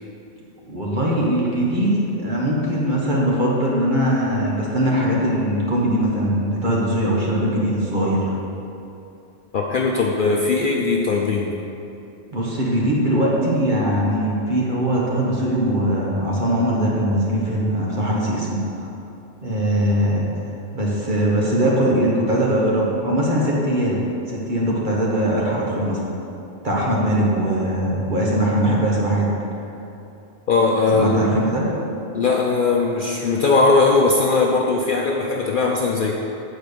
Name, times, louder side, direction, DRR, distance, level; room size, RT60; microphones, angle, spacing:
voice 1, 0.7-8.2 12.3-18.6 19.4-20.2 20.7-24.0 24.3-26.0 26.6-29.3 30.9-31.7, right 1 dB, 40° right, -4 dB, 1.5 m, -21 dB
voice 2, 9.5-11.5 30.5-31.2 32.1-36.1, left 3 dB, 55° left, -1 dB, 0.6 m, -19 dB
8.1 x 4.5 x 6.7 m, 2.8 s
omnidirectional pair, 1.3 m